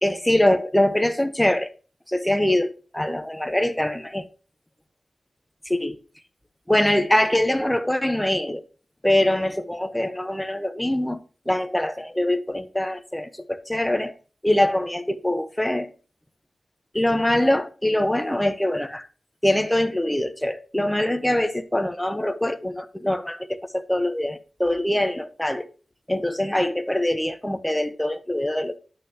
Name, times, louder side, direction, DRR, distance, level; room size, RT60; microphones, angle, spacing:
voice 1, 0.0-1.7 2.1-4.2 5.7-6.0 6.7-8.6 9.0-11.2 11.5-14.2 14.4-15.9 16.9-19.1 19.4-25.6 26.1-28.8, left 1 dB, 10° left, 1.1 m, -23 dB
10.0 x 6.1 x 2.9 m
cardioid pair, 60°, 0 cm